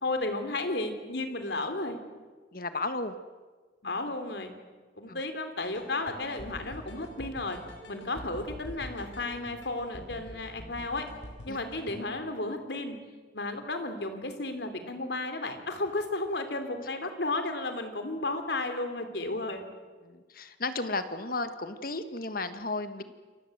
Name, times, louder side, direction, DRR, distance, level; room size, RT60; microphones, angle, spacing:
voice 1, 0.0-2.0 3.8-4.5 5.0-7.6 7.9-11.1 11.4-13.0 13.3-19.7, left 2 dB, 65° left, 8 dB, 3.3 m, -33 dB
voice 2, 2.5-3.1 5.1-5.2 11.5-11.6 20.0-23.0, left 3 dB, 50° left, 10 dB, 1.6 m, -34 dB
sound 1, 5.6-12.0, equal, 90° left, 6.2 m, -45 dB
28.5 x 23.0 x 8.0 m, 1.4 s
head